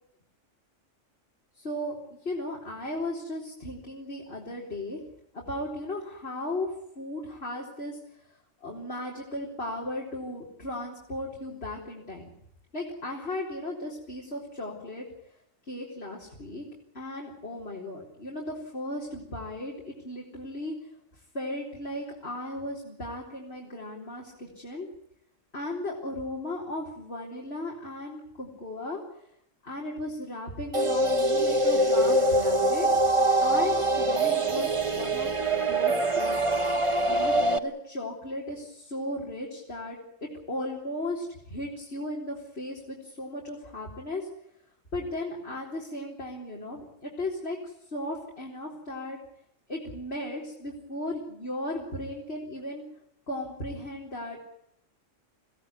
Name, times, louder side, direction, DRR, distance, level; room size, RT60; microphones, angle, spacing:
voice 1, 1.6-2.0 2.2-5.0 5.3-8.0 8.6-12.3 12.7-15.1 15.7-16.6 16.9-20.7 21.3-24.9 25.5-29.0 29.6-32.9 33.4-36.6 37.1-40.0 40.5-44.3 44.9-49.2 49.7-52.8 53.3-54.5, left 1 dB, 50° left, -2 dB, 4.5 m, -36 dB
sound 1, 30.7-37.6, right 1 dB, 25° right, 1.2 m, -24 dB
25.5 x 16.5 x 9.8 m, 0.78 s
omnidirectional pair, 1.3 m